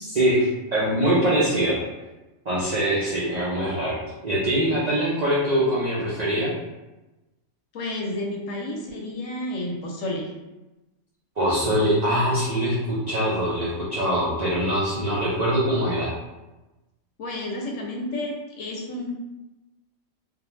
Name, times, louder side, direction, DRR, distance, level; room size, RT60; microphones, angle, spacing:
voice 1, 0.1-1.8 2.5-6.5 11.4-16.1, right 1 dB, 70° right, -7 dB, 0.3 m, -23 dB
voice 2, 7.7-10.3 17.2-19.1, left 1 dB, 70° left, 0 dB, 0.9 m, -31 dB
2.6 x 2.1 x 3.0 m, 1.0 s
omnidirectional pair, 1.5 m